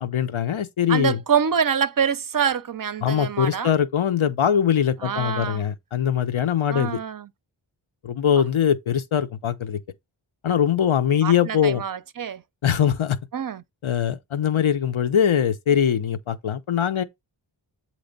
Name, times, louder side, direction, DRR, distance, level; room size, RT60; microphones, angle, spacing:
voice 1, 0.0-1.2 3.0-7.0 8.0-9.8 10.4-11.8 12.6-13.2 13.8-17.0, left 9 dB, 85° left, 0.8 m, -22 dB
voice 2, 0.9-3.7 5.0-5.6 6.7-7.3 11.2-12.4 13.3-13.6, right 7 dB, 45° right, 0.5 m, -25 dB
7.9 x 3.0 x 5.1 m
wide cardioid pair, 45°, 47 cm